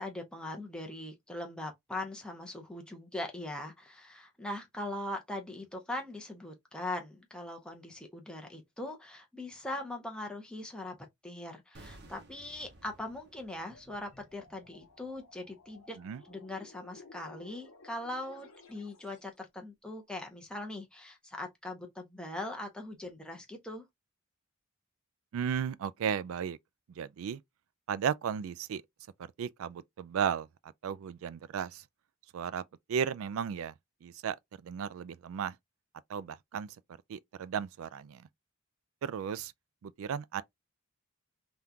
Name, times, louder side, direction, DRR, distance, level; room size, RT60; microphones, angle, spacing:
voice 1, 0.0-11.0 11.2-16.0 16.3-23.8, left 1 dB, 5° left, 0.7 m, -41 dB
sound 1, 11.7-16.8 17.0-17.2, right 2 dB, 45° right, 0.7 m, -58 dB
sound 2, 13.7-19.4, left 3 dB, 75° left, 0.9 m, -56 dB
voice 2, 25.3-26.6 27.0-27.4 27.9-28.8 29.2-31.8 32.3-32.6 32.9-33.7 34.0-34.4 34.6-35.6 36.1-36.8 37.1-38.3 39.0-39.5 39.8-40.4, right 7 dB, 70° right, 0.3 m, -35 dB
3.5 x 2.3 x 2.7 m
head